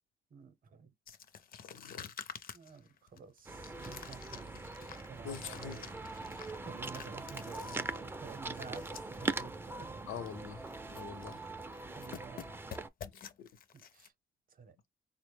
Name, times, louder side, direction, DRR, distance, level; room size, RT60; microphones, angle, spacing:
voice 1, 0.3-0.9 2.5-4.5 5.0-6.0 6.6-10.0 12.0-12.6 13.7-14.1 14.5-14.7, right 6 dB, 45° right, 0.7 m, -51 dB
sound 1, 1.1-9.4 9.7-9.8 10.1-10.4 10.7-11.5 11.7-14.1, left 7 dB, 50° left, 0.5 m, -50 dB
voice 2, 1.6-2.1 5.2-5.9 10.0-10.6 10.9-11.4 13.0-13.1 13.4-13.5, left 7 dB, 90° left, 0.6 m, -44 dB
sound 2, 3.5-12.9, right 3 dB, 10° right, 0.3 m, -42 dB
3.8 x 2.1 x 3.2 m
cardioid pair, 90°, 20 cm